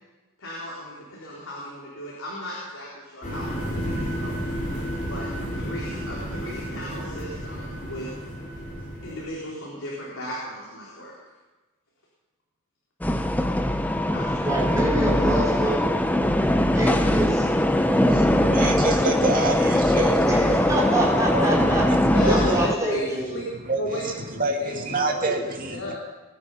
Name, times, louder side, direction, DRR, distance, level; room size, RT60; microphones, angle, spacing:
voice 1, 0.4-4.4 5.0-5.3 5.5-8.1 9.0-11.1 14.1-14.5 22.1-22.5 22.8-23.0 23.3-23.4 23.8-24.7 25.1-25.4 25.7-25.9, equal, 70° left, -6 dB, 4.0 m, -35 dB
sound 1, 3.2-9.2, equal, 40° left, 5.7 m, -32 dB
sound 2, 13.0-22.7, left 1 dB, 10° left, 0.6 m, -21 dB
voice 2, 14.4-15.9 16.7-17.5 20.3-21.9 22.3-23.4, right 1 dB, 15° right, -3 dB, 3.5 m, -26 dB
voice 3, 17.9-20.6 21.3-22.5 23.7-25.9, right 2 dB, 40° right, 1 dB, 2.2 m, -28 dB
21.5 x 10.0 x 5.5 m, 1.2 s
head